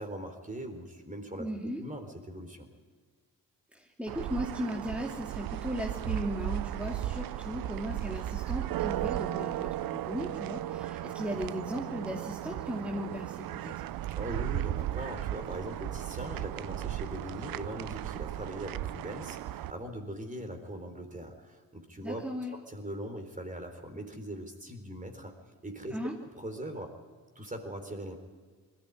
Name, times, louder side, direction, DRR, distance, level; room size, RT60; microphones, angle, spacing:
voice 1, 0.0-2.7 14.2-25.4 25.6-26.0 26.4-26.9 27.4-28.2, right 1 dB, 20° right, 5 dB, 4.0 m, -41 dB
voice 2, 1.4-1.8 3.7-13.7 22.0-22.5 25.9-26.1, equal, 5° right, -2 dB, 2.7 m, -37 dB
sound 1, 4.1-19.7, right 13 dB, 70° right, 0.6 m, -36 dB
20.5 x 14.5 x 9.5 m, 1.5 s
supercardioid pair, 60°, 36 cm